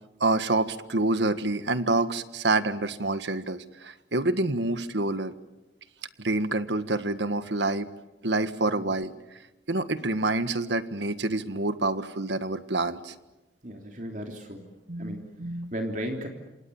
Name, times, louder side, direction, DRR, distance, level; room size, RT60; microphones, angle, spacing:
voice 1, 0.2-5.3 6.2-7.9 8.2-9.1 9.7-13.1 14.9-15.7, right 2 dB, 80° right, 11 dB, 1.6 m, -27 dB
voice 2, 13.6-14.6 15.0-15.3 15.7-16.3, equal, 45° right, 3 dB, 3.3 m, -35 dB
27.5 x 27.5 x 7.1 m, 1.0 s
head